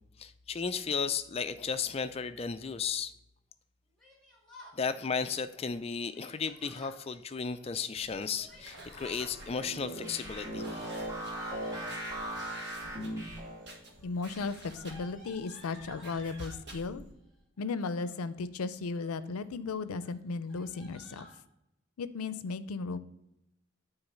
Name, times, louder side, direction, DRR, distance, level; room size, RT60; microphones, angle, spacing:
voice 1, 0.2-3.1 4.8-11.1, left 6 dB, 25° left, 10 dB, 0.3 m, -34 dB
Yell, 4.0-4.8 6.1-7.0 8.2-9.3 10.6-12.4 13.3-13.7 14.0-16.6 17.6-18.1 18.7-19.2 19.6-19.7 20.0-20.1 20.4-21.3, equal, ahead, 2.2 m, -53 dB
sound 1, 8.0-17.1, right 2 dB, 50° right, 1.5 m, -51 dB
sound 2, 9.3-13.7, right 1 dB, 15° right, 2.3 m, -38 dB
voice 2, 14.0-17.0 17.6-21.3 22.0-23.0, left 4 dB, 85° left, 14 dB, 0.5 m, -35 dB
8.9 x 3.9 x 5.5 m, 0.84 s
head